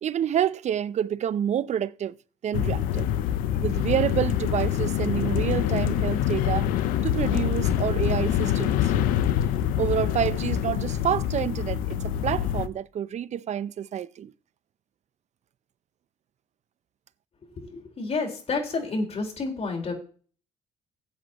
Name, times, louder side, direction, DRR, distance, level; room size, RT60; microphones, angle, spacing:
voice 1, 0.0-2.2 2.4-3.1 3.6-6.7 7.0-8.9 9.8-14.3, right 9 dB, 55° right, 0.7 m, -28 dB
sound 1, 2.5-12.7, left 10 dB, 80° left, 0.9 m, -25 dB
voice 2, 17.7-19.9, left 3 dB, 50° left, 4.7 m, -29 dB
19.0 x 8.2 x 3.0 m
supercardioid pair, 65°, 14 cm